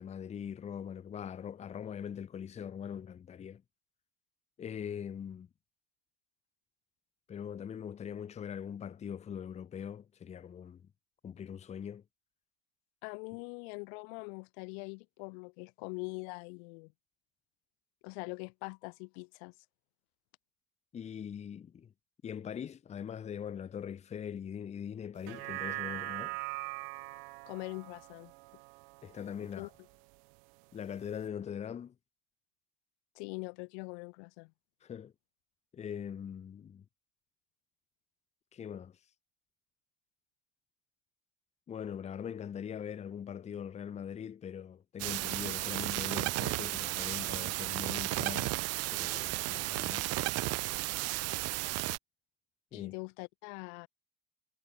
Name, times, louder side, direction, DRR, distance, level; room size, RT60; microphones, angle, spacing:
voice 1, 0.0-3.6 4.6-5.5 7.3-10.8 11.2-12.0 20.9-21.9 22.2-26.4 29.0-29.7 30.7-31.9 34.8-35.1 35.7-36.8 38.5-39.0 41.7-48.5 48.9-50.1 52.7-52.9, left 8 dB, 20° left, 0.9 m, -42 dB
voice 2, 13.0-16.9 18.0-19.5 27.4-28.3 29.4-29.7 33.1-34.5 52.7-53.9, left 39 dB, 85° left, 1.3 m, -43 dB
sound 1, 25.2-29.7 30.1-30.2, right 37 dB, 85° right, 1.3 m, -41 dB
sound 2, 45.0-52.0, right 20 dB, 50° right, 1.2 m, -34 dB
cardioid pair, 160°, 32 cm